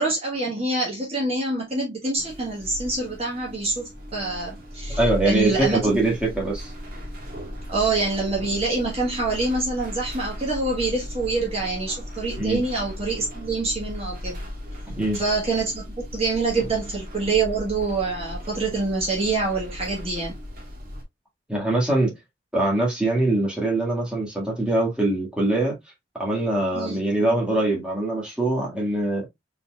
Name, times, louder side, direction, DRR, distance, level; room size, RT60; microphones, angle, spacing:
voice 1, 0.0-5.9 7.7-14.4 15.1-20.4 26.7-27.0, right 3 dB, 35° right, 1.3 m, -26 dB
sound 1, 2.2-21.0, left 1 dB, 50° right, 1.4 m, -36 dB
voice 2, 5.0-6.7 12.4-12.6 14.9-15.2 21.5-22.2 22.5-25.8 26.2-29.3, right 2 dB, 5° right, 1.7 m, -23 dB
4.1 x 3.9 x 2.3 m
head